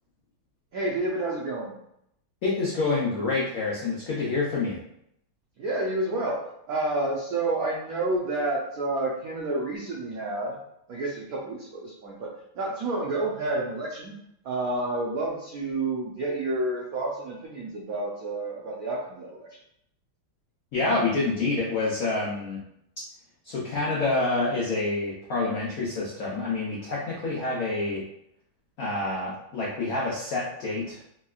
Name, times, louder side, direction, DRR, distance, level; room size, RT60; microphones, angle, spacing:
voice 1, 0.7-1.8 5.6-6.4 6.7-10.6 10.9-14.1 14.4-19.5, right 2 dB, 85° right, -4 dB, 0.8 m, -29 dB
voice 2, 2.4-4.8 20.7-22.6 23.4-28.0 28.8-31.0, left 3 dB, 85° left, -5 dB, 0.7 m, -27 dB
3.3 x 2.9 x 2.3 m, 0.76 s
omnidirectional pair, 2.3 m